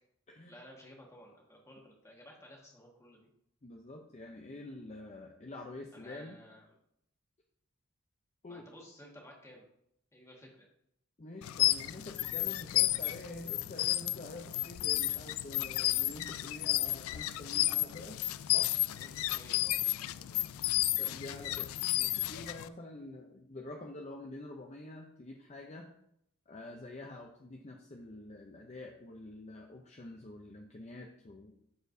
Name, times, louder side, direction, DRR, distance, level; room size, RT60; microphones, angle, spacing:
voice 1, 0.5-3.3 5.9-6.7 8.5-9.6 10.1-10.7 18.4-18.5 18.8-20.9, equal, 15° left, -1 dB, 1.4 m, -55 dB
voice 2, 3.6-6.4 8.4-8.7 11.2-18.2 18.5-18.7 21.0-21.7 22.0-25.9 26.5-31.5, left 2 dB, 35° left, 2 dB, 0.6 m, -47 dB
sound 1, 11.4-22.7, left 16 dB, 90° left, 0.3 m, -32 dB
13.0 x 4.4 x 2.6 m, 0.74 s
head